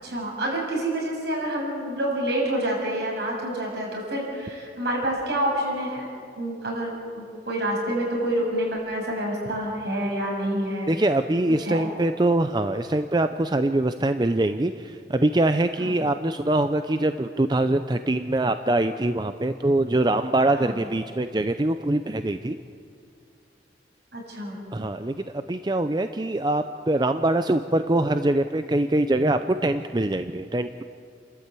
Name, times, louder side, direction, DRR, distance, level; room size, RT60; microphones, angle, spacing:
voice 1, 0.0-6.0 6.4-10.9 11.6-11.9 15.8-15.9 20.5-20.8 24.1-24.6, right 1 dB, 65° right, -2 dB, 7.3 m, -28 dB
voice 2, 10.9-22.6 24.7-30.8, right 1 dB, 25° right, 9 dB, 0.5 m, -23 dB
29.5 x 13.0 x 8.3 m, 2.4 s
head